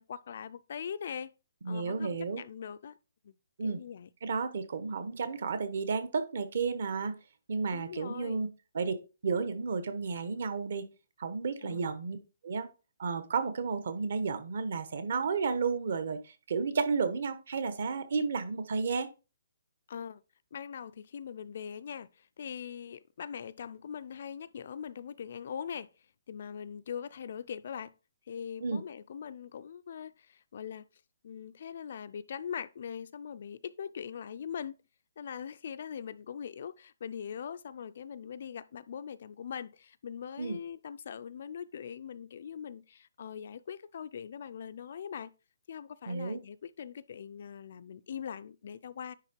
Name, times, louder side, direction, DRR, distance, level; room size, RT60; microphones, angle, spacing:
voice 1, 0.0-1.3 1.7-3.0 3.2-3.3 3.6-4.1 7.7-8.5 11.6-11.9 19.9-20.2 20.5-25.9 26.3-27.9 28.3-30.8 31.2-34.7 35.2-45.3 45.7-49.1, left 7 dB, 40° left, 0.3 m, -41 dB
voice 2, 1.6-2.4 3.6-3.8 4.2-7.1 7.5-8.5 8.7-9.0 9.2-10.8 11.2-12.2 12.4-12.7 13.0-19.1 28.6-28.8 40.4-40.6 46.1-46.4, right 5 dB, 50° right, 1.0 m, -32 dB
10.0 x 3.5 x 4.5 m
hypercardioid pair, 180°, 0 cm